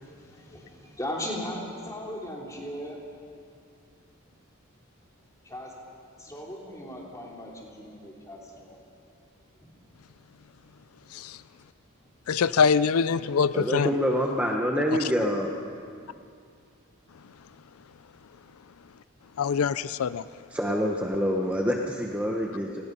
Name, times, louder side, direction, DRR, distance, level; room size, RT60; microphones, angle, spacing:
voice 1, 0.0-3.0 5.4-5.7 6.2-8.8 9.6-9.7, left 1 dB, 15° left, -2 dB, 3.5 m, -38 dB
voice 2, 12.3-13.9 19.4-20.3, left 6 dB, 85° left, 16 dB, 0.4 m, -24 dB
voice 3, 13.5-15.5 20.5-22.8, equal, 5° right, 0 dB, 1.0 m, -26 dB
29.5 x 19.5 x 5.4 m, 2.4 s
head